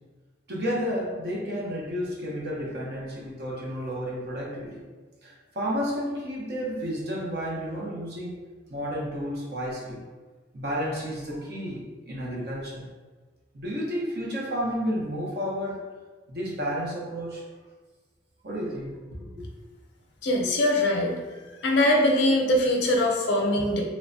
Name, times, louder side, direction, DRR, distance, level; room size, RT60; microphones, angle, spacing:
voice 1, 0.5-4.8 5.2-8.4 8.7-10.0 10.5-12.9 13.5-15.8 16.3-17.4 18.4-19.5, equal, 55° right, -4 dB, 0.7 m, -31 dB
voice 2, 20.2-21.1 21.6-23.8, left 1 dB, 75° left, 0 dB, 0.5 m, -22 dB
3.1 x 2.1 x 2.6 m, 1.3 s
head